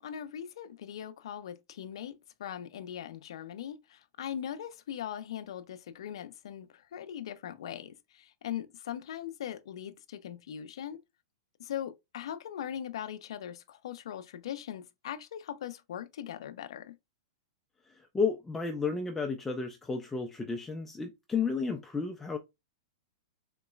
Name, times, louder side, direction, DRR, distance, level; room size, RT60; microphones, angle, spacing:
voice 1, 0.0-2.1 2.4-11.0 11.6-16.9, left 10 dB, 75° left, 0.4 m, -40 dB
voice 2, 18.1-22.4, left 5 dB, 10° left, 0.3 m, -32 dB
3.8 x 2.9 x 2.2 m
hypercardioid pair, 135°, 3 cm